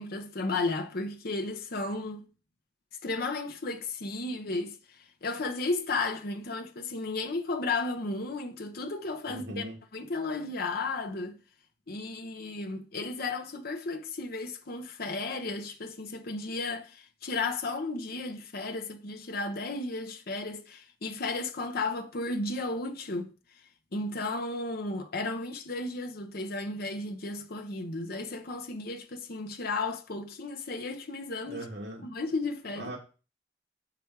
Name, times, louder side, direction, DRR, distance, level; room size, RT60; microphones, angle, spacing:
voice 1, 0.0-2.2 3.0-4.8 5.2-9.6 9.9-11.4 11.9-23.3 23.9-31.6 32.0-32.9, left 3 dB, 55° left, 0.9 m, -34 dB
voice 2, 9.3-9.8 31.4-32.0 32.8-33.0, right 1 dB, 70° right, 2.1 m, -39 dB
7.0 x 5.0 x 4.6 m
head